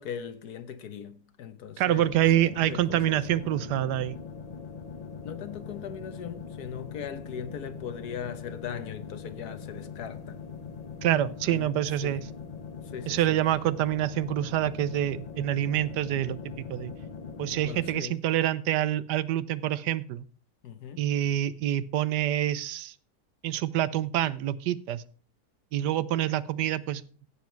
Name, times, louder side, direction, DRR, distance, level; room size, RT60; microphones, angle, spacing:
voice 1, 0.0-3.4 5.2-10.4 11.5-11.7 12.0-12.3 12.8-13.4 17.7-18.2 20.6-21.1, left 8 dB, 70° left, 1.5 m, -39 dB
voice 2, 1.8-4.2 11.0-12.2 13.1-16.9 17.4-20.3 21.0-22.9 23.4-25.0 25.7-27.0, right 12 dB, 80° right, 1.3 m, -26 dB
sound 1, 2.0-18.0, left 5 dB, 35° left, 0.7 m, -41 dB
15.5 x 7.3 x 4.5 m
omnidirectional pair, 1.8 m